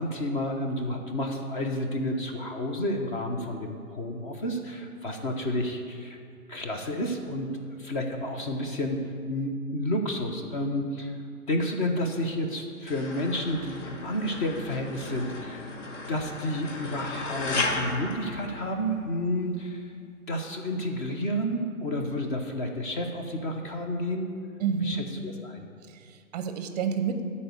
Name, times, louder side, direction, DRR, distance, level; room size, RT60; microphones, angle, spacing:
voice 1, 0.0-6.2 6.5-7.5 7.8-11.2 11.5-15.7 16.1-19.9 20.3-24.3 24.8-25.7, left 1 dB, 35° left, 3 dB, 0.9 m, -30 dB
sound 1, 12.9-19.2, left 3 dB, 55° left, 1.3 m, -35 dB
voice 2, 24.6-25.0 25.9-27.2, right 6 dB, 30° right, 8 dB, 0.6 m, -29 dB
12.0 x 4.2 x 8.2 m, 2.3 s
hypercardioid pair, 140°, 45 cm